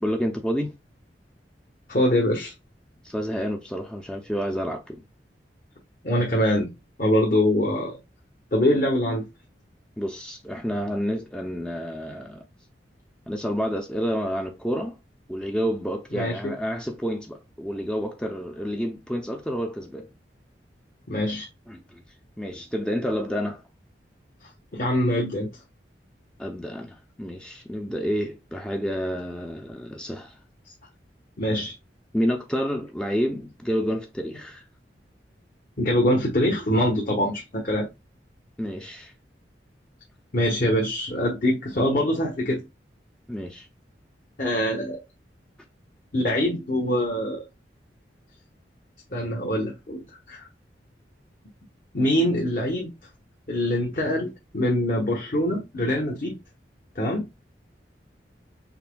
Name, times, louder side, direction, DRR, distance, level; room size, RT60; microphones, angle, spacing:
voice 1, 0.0-0.7 3.0-5.0 10.0-12.4 13.3-15.0 15.3-20.1 21.7-22.0 22.4-23.6 26.4-30.4 32.1-34.6 38.6-39.1 43.3-43.7, equal, 5° left, 0.5 m, -29 dB
voice 2, 1.9-2.5 6.0-6.7 7.0-8.0 8.5-9.2 16.1-16.5 21.1-21.5 24.7-25.5 31.4-31.7 35.8-37.9 40.3-42.6 44.4-45.0 46.1-47.4 49.1-50.0 50.3-50.5 51.9-52.9 53.5-56.3 56.9-57.3, left 1 dB, 50° left, 1.2 m, -24 dB
5.7 x 3.5 x 2.2 m
head